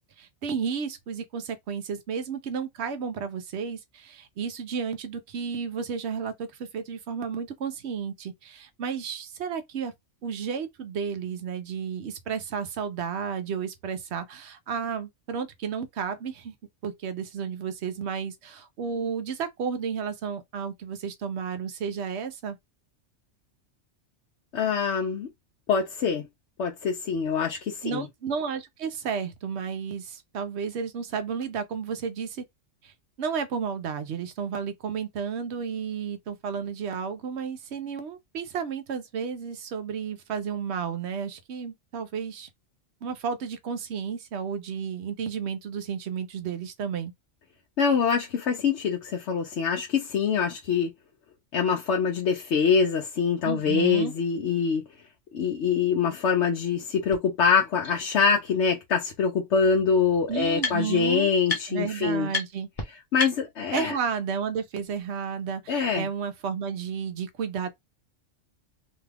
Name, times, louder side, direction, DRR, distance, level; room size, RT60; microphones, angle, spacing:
voice 1, 0.2-9.9 10.2-16.5 16.8-22.6 27.8-32.4 32.8-32.9 33.2-42.5 43.0-47.1 53.4-54.1 60.3-61.3 61.7-62.7 63.7-67.7, right 6 dB, 65° right, 0.9 m, -32 dB
voice 2, 24.5-25.3 25.7-26.2 26.6-28.1 47.8-50.9 51.5-54.9 55.3-62.3 63.1-64.0 65.7-66.1, left 6 dB, 70° left, 1.0 m, -24 dB
sound 1, 57.1-57.2 57.8-57.9 59.2-59.3 59.6-61.1 61.4-61.9 62.3-62.5 62.8-62.9 63.2-64.2, left 4 dB, 35° left, 0.9 m, -32 dB
2.9 x 2.3 x 3.3 m
omnidirectional pair, 1.2 m